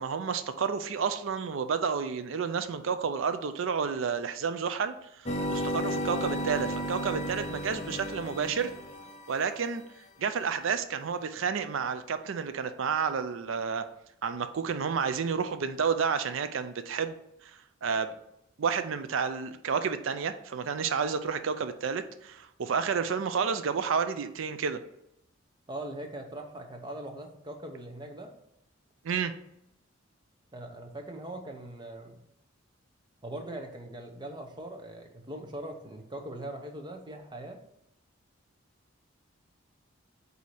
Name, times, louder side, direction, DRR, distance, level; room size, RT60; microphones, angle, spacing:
voice 1, 0.0-8.7 9.3-9.8 10.2-13.9 14.2-17.1 17.8-18.1 18.6-24.8 29.0-29.3, right 6 dB, 70° right, 10 dB, 0.4 m, -30 dB
sound 1, 5.3-9.5, equal, 30° left, 0.6 m, -33 dB
voice 2, 25.7-28.3 30.5-32.2 33.2-37.6, right 1 dB, 20° right, 4 dB, 0.8 m, -41 dB
8.3 x 2.8 x 4.8 m, 0.78 s
head